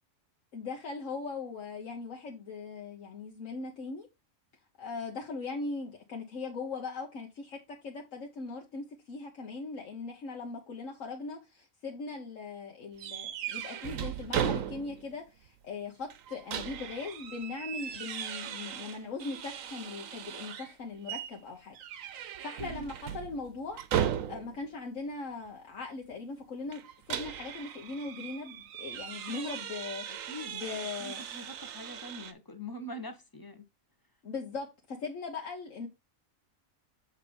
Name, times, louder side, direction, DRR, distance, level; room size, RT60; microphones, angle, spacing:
voice 1, 0.5-4.1 4.8-21.8 22.1-26.8 27.1-31.2 34.2-35.9, left 4 dB, 75° left, 1.5 m, -40 dB
sound 1, 13.0-15.1 15.5-15.6 16.1-20.7 21.1-21.4 21.7-24.7 26.7-32.3, right 9 dB, 80° right, 1.1 m, -37 dB
voice 2, 30.1-30.6 31.0-33.7, equal, 20° left, 0.9 m, -44 dB
7.2 x 3.7 x 5.2 m
omnidirectional pair, 1.4 m